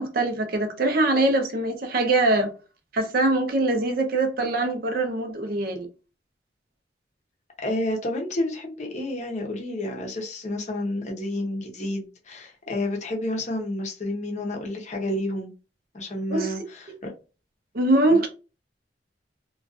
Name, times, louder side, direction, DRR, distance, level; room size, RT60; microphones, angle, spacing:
voice 1, 0.0-2.5 2.9-5.9 16.3-16.5 17.7-18.3, right 2 dB, 50° right, 0.6 m, -23 dB
voice 2, 7.6-15.5 15.9-17.1 18.1-18.2, left 1 dB, 40° left, 0.6 m, -30 dB
2.4 x 2.2 x 2.3 m
head